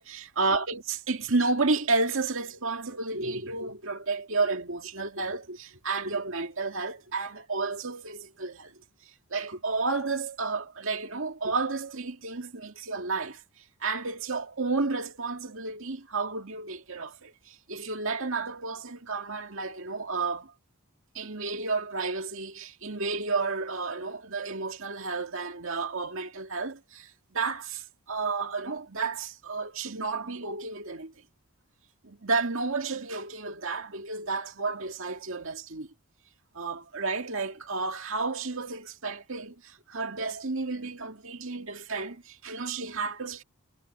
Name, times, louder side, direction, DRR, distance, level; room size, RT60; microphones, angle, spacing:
voice 1, 0.0-8.7 9.3-13.4 13.8-20.5 21.1-31.1 32.0-35.9 36.5-43.4, right 3 dB, 65° right, 2.1 m, -31 dB
head